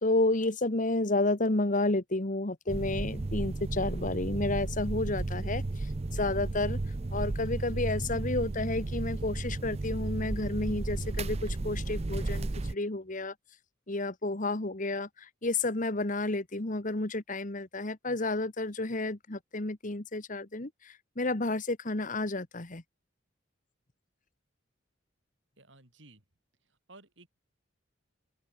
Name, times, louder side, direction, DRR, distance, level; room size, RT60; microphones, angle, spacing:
voice 1, 0.0-6.8 7.1-13.3 13.9-22.8, left 2 dB, 40° left, 1.6 m, -31 dB
sound 1, 2.7-12.7, right 2 dB, 30° right, 0.5 m, -33 dB
voice 2, 25.6-26.2 26.7-27.3, right 2 dB, 65° right, 6.0 m, -55 dB
open air
head